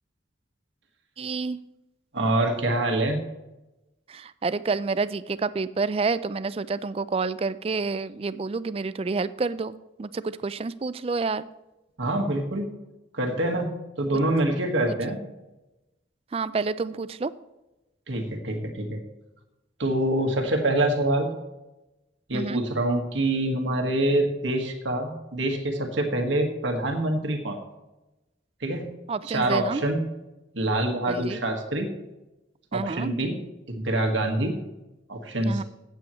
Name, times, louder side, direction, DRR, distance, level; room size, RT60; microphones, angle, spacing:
voice 1, 1.2-1.6 4.1-11.4 14.9-15.2 16.3-17.3 22.3-22.6 29.1-29.8 31.1-31.4 32.7-33.1 35.5-35.6, right 4 dB, 30° right, 15 dB, 0.3 m, -29 dB
voice 2, 2.1-3.2 12.0-12.7 13.1-15.2 18.1-19.0 19.8-21.3 22.3-27.6 28.6-28.8 29.2-30.0 30.5-31.9 32.7-33.4 33.7-34.5 35.1-35.6, right 1 dB, 80° right, 3 dB, 1.6 m, -25 dB
15.0 x 8.3 x 3.1 m, 1.0 s
head